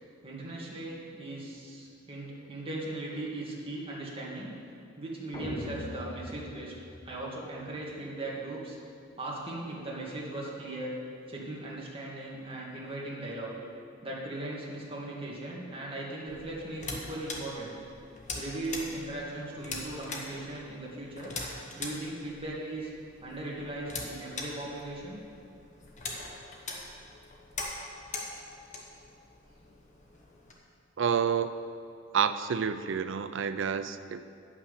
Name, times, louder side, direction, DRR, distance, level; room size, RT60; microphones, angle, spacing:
voice 1, 0.2-4.5 5.0-6.7 7.0-8.8 9.2-10.9 11.3-13.5 14.0-17.8 18.3-21.3 21.8-22.9 23.2-25.2, right 2 dB, 30° right, -5 dB, 2.0 m, -38 dB
sound 1, 5.3-7.6, left 2 dB, 25° left, 0.7 m, -41 dB
sound 2, 16.3-30.5, left 3 dB, 40° left, 1.2 m, -42 dB
voice 2, 31.0-31.5 32.1-34.2, right 7 dB, 65° right, 12 dB, 0.4 m, -29 dB
9.4 x 5.9 x 6.5 m, 2.5 s
head